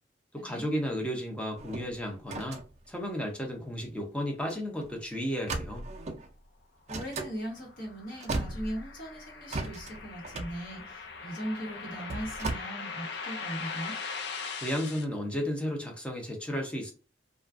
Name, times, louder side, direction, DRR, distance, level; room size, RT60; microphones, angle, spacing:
voice 1, 0.3-2.6 2.9-5.8 14.6-16.9, equal, 5° left, 1 dB, 0.6 m, -33 dB
sound 1, 1.6-4.0 4.4-4.5 4.8-5.0 5.4-6.3 6.9-7.3 7.9-8.0 8.1-9.1 9.5-12.5, right 3 dB, 40° right, 0.4 m, -37 dB
voice 2, 6.9-14.0, equal, 55° left, -2 dB, 1.3 m, -39 dB
sound 2, 7.3-15.0, left 5 dB, 70° left, 0.4 m, -41 dB
2.4 x 2.3 x 2.4 m, 0.35 s
head